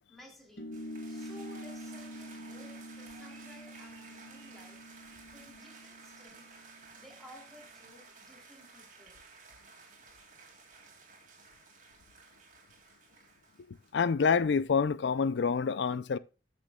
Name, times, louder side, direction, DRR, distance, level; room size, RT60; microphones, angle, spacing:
voice 1, 0.1-0.7 1.1-4.8 5.3-6.6 7.0-9.2, equal, ahead, 2.9 m, -55 dB
sound 1, 0.6-7.5, equal, 60° left, 1.2 m, -46 dB
sound 2, 0.7-13.9, right 4 dB, 45° right, 2.3 m, -54 dB
voice 2, 13.9-16.2, left 5 dB, 80° left, 0.4 m, -27 dB
13.5 x 6.3 x 2.3 m
head